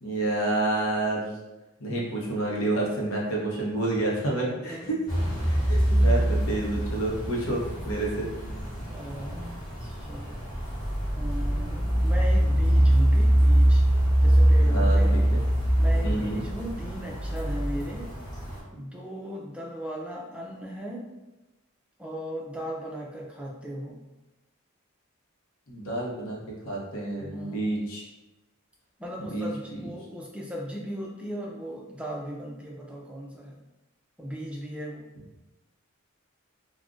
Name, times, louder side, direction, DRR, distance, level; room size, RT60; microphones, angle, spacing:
voice 1, 0.0-1.3 1.8-5.0 5.5-8.3 14.6-15.4 15.9-16.4 25.7-26.4 26.6-28.0 29.2-29.9, right 2 dB, 70° left, -3 dB, 0.8 m, -29 dB
voice 2, 4.6-5.0 8.9-9.4 9.8-10.5 11.1-13.8 14.2-15.3 15.8-18.1 18.7-21.0 22.0-24.0 27.2-27.7 29.0-33.6 34.2-35.0, equal, 5° right, -2 dB, 0.3 m, -37 dB
sound 1, 5.1-18.6, right 1 dB, 20° left, 0.8 m, -23 dB
2.4 x 2.1 x 3.7 m, 1.0 s
head